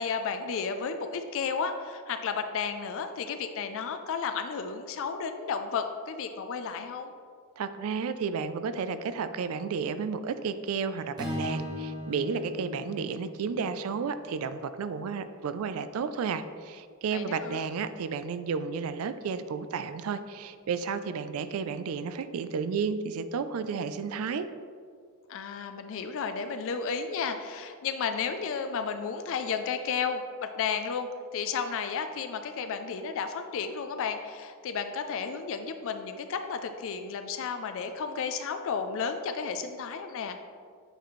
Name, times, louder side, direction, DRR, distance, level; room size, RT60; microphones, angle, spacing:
voice 1, 0.0-7.1 17.1-17.6 25.3-40.4, left 6 dB, 65° left, 8 dB, 0.4 m, -33 dB
voice 2, 7.6-24.5, right 5 dB, 70° right, 12 dB, 0.3 m, -32 dB
Strum, 11.2-15.5, left 1 dB, 20° right, 1.0 m, -39 dB
7.9 x 4.2 x 3.1 m, 2.1 s
head